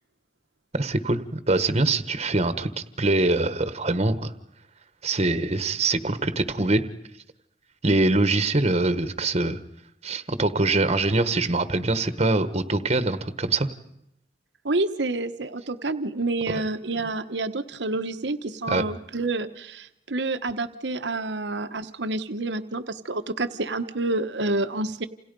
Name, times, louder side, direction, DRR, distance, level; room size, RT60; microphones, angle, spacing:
voice 1, 0.7-2.7 3.0-4.3 5.0-6.8 7.8-9.6 10.0-13.7 16.5-16.6 18.7-18.8, right 2 dB, 35° right, 11 dB, 1.3 m, -23 dB
voice 2, 14.6-25.1, right 2 dB, 75° right, 9 dB, 1.2 m, -28 dB
29.0 x 28.0 x 5.4 m, 0.79 s
head